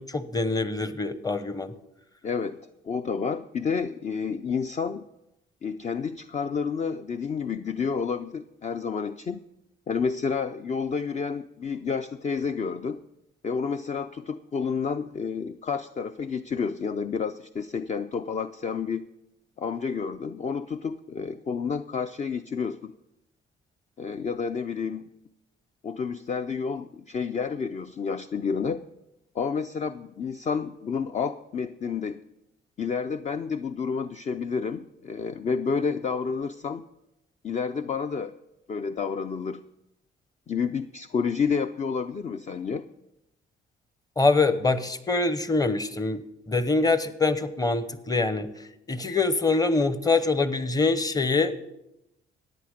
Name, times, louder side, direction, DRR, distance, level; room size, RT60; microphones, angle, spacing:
voice 1, 0.0-1.7 44.2-46.2 46.5-48.5 48.9-51.5, left 3 dB, 20° left, 12 dB, 1.0 m, -24 dB
voice 2, 2.2-2.6 2.8-5.0 5.6-9.4 9.9-13.0 13.4-19.0 19.6-22.9 24.0-25.1 25.8-28.8 29.3-32.2 32.8-36.8 37.4-38.3 38.7-39.6 40.5-42.9, left 5 dB, 35° left, 10 dB, 0.5 m, -30 dB
14.5 x 9.8 x 5.1 m, 0.88 s
cardioid pair, 90°, 20 cm